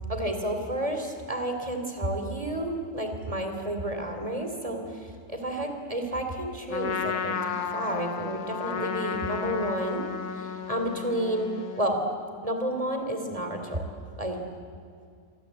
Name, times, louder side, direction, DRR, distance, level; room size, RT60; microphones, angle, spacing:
voice 1, 0.1-10.0 10.3-12.0 12.4-13.8 14.2-14.4, right 1 dB, 20° right, 5 dB, 3.1 m, -31 dB
Trumpet, 6.7-11.9, left 7 dB, 70° left, 1.7 m, -33 dB
26.5 x 24.0 x 8.3 m, 2.3 s
omnidirectional pair, 1.8 m